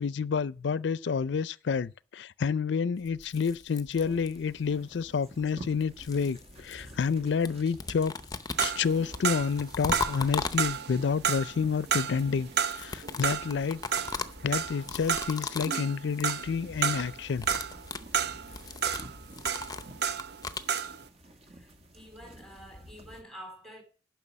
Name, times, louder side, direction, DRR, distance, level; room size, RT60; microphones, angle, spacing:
voice 1, 0.0-8.1 8.6-13.8 14.4-17.5, left 6 dB, 70° left, 0.4 m, -29 dB
sound 1, 3.0-4.6 5.6-7.2 7.4-11.1 12.5-15.8 16.1-16.4 16.7-17.0 17.3-20.7, left 4 dB, 20° left, 0.7 m, -38 dB
sound 2, 3.9-23.2, equal, 35° right, 1.8 m, -50 dB
sound 3, 8.6-20.4 20.7-21.0, right 7 dB, 65° right, 0.7 m, -31 dB
voice 2, 21.3-23.8, equal, ahead, 3.8 m, -49 dB
11.0 x 5.9 x 7.3 m
head